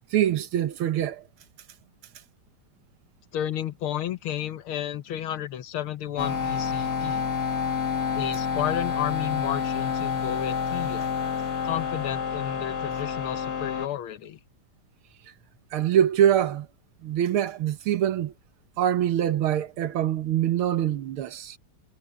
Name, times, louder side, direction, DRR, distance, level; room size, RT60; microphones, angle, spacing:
voice 1, 0.1-1.2 15.7-16.7 17.0-18.3 18.8-21.6, right 10 dB, 85° right, 2.0 m, -24 dB
voice 2, 3.3-7.3 8.1-11.1 11.6-14.4, left 11 dB, 85° left, 1.9 m, -32 dB
sound 1, 6.2-13.9, left 6 dB, 50° left, 2.1 m, -28 dB
omnidirectional pair, 2.3 m